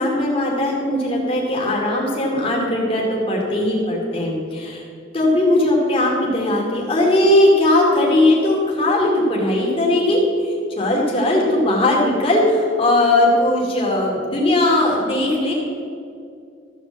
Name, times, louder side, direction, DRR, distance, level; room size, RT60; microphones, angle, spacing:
voice 1, 0.0-4.8 5.1-15.5, left 1 dB, 30° left, -3 dB, 2.4 m, -18 dB
14.0 x 5.2 x 7.5 m, 2.4 s
head